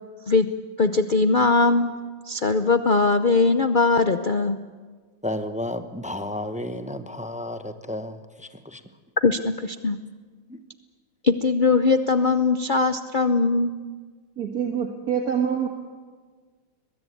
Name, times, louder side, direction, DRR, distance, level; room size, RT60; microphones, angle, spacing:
voice 1, 0.8-1.9 2.3-4.6 9.2-10.0 11.2-13.7, left 3 dB, 75° left, 9 dB, 0.4 m, -20 dB
voice 2, 5.2-8.8 10.5-10.6, left 1 dB, 5° right, 9 dB, 0.5 m, -32 dB
voice 3, 14.4-15.7, right 8 dB, 55° right, 3 dB, 2.0 m, -25 dB
22.0 x 21.5 x 8.6 m, 1.5 s
omnidirectional pair, 2.0 m